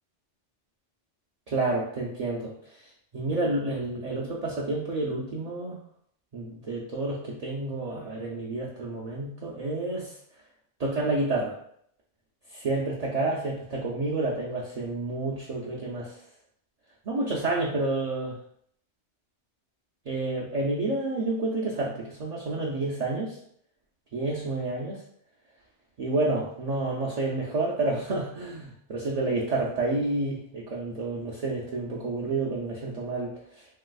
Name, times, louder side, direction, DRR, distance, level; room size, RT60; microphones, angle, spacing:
voice 1, 1.5-2.5 3.1-5.8 6.3-10.1 10.8-11.6 12.5-16.2 17.1-18.3 20.1-23.4 24.1-25.0 26.0-33.4, right 2 dB, 60° right, -4 dB, 0.4 m, -29 dB
3.2 x 2.7 x 2.3 m, 0.67 s
omnidirectional pair, 1.2 m